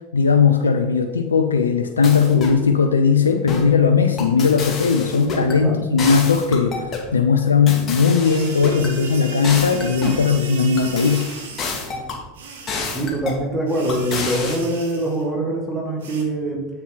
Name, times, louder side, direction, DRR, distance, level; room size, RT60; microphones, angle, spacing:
voice 1, 0.1-11.3, left 5 dB, 85° left, 6 dB, 0.5 m, -18 dB
sound 1, 2.0-2.6 3.5-3.8 4.2-5.6 6.0-7.1 7.7-8.9 9.4-10.3 10.8-12.2 12.7-13.4 13.9-14.6, left 4 dB, 35° left, 2.1 m, -29 dB
sound 2, 8.2-11.9 12.3-13.1 13.7-15.3 16.0-16.2, right 5 dB, 75° right, 1.5 m, -35 dB
voice 2, 12.9-16.7, right 1 dB, 10° right, -1 dB, 2.0 m, -24 dB
7.5 x 7.1 x 4.1 m, 1.1 s
hypercardioid pair, 85°, 0 cm